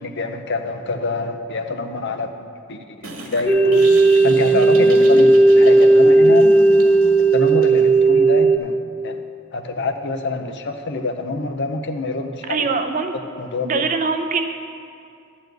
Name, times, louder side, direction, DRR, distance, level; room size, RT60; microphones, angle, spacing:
voice 1, 0.0-3.8 4.2-6.5 7.3-8.8 9.0-9.2 9.5-12.7 13.4-13.8, left 3 dB, 55° left, 7 dB, 0.6 m, -26 dB
sound 1, 3.0-8.0, right 1 dB, 90° right, 1.9 m, -34 dB
sound 2, 3.5-8.6, right 2 dB, 10° left, 0.4 m, -13 dB
voice 2, 12.5-13.1 13.6-14.5, right 4 dB, 40° right, 6 dB, 0.6 m, -22 dB
12.0 x 4.3 x 8.0 m, 2.4 s
head